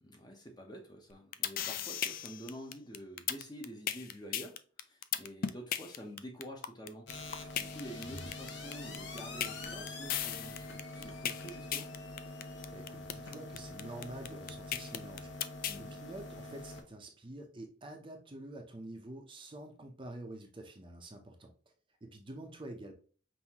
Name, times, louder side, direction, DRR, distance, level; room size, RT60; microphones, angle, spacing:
voice 1, 0.0-11.9 15.6-16.0, equal, 20° left, 0.8 m, -48 dB
sound 1, 1.1-15.8, left 10 dB, 45° left, 0.3 m, -36 dB
sound 2, 7.1-16.8, left 2 dB, 60° left, 0.9 m, -45 dB
voice 2, 12.7-15.3 15.8-21.5 22.0-22.9, right 1 dB, 25° right, 0.7 m, -47 dB
5.5 x 2.7 x 2.9 m
head